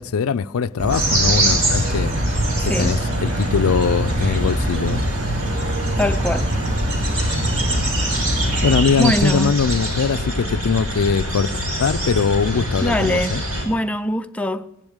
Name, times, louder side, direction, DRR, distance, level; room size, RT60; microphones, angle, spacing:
voice 1, 0.0-2.2 2.6-5.0 8.6-13.4, left 6 dB, 75° left, 0.4 m, -21 dB
Insect / Frog, 0.8-8.8, right 1 dB, 35° right, 0.8 m, -24 dB
sound 1, 0.9-13.7, right 1 dB, 80° right, 5.7 m, -24 dB
voice 2, 2.6-3.0 6.0-6.5 9.0-9.6 12.8-13.4 13.6-14.7, left 1 dB, 5° left, 0.4 m, -22 dB
16.0 x 10.5 x 6.5 m
head